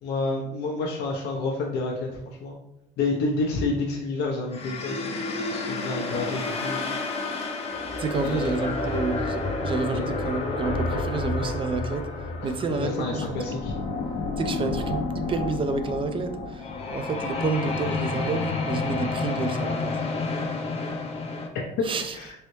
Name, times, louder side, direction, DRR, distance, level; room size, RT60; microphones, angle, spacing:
voice 1, 0.0-2.6 3.0-6.8 8.2-8.6 9.9-10.0 12.4-13.7 16.8-16.9 21.8-22.3, left 3 dB, 85° left, 0.6 m, -29 dB
sound 1, 4.5-21.5, left 3 dB, 35° left, 0.5 m, -30 dB
voice 2, 8.0-12.1 12.4-13.4 14.4-20.0 21.8-22.1, right 4 dB, 30° right, 0.4 m, -29 dB
3.2 x 2.7 x 3.0 m
cardioid pair, 110°, 17 cm